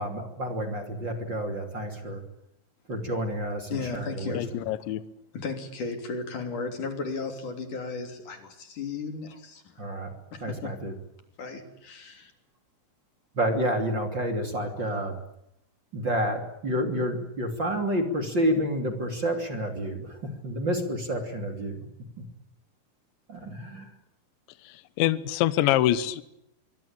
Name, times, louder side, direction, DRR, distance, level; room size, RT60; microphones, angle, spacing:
voice 1, 0.0-2.2 2.9-4.4 9.8-10.1 10.4-10.9 13.3-15.2 15.9-20.2 20.4-21.8 23.3-23.9, equal, 30° right, 5 dB, 2.6 m, -29 dB
voice 2, 3.7-4.5 5.3-9.6 10.3-10.8 11.4-12.3, left 4 dB, 45° left, 6 dB, 4.2 m, -35 dB
voice 3, 4.3-5.0 24.5-26.2, left 13 dB, 75° left, 14 dB, 3.3 m, -25 dB
25.5 x 23.5 x 8.8 m, 0.79 s
omnidirectional pair, 5.7 m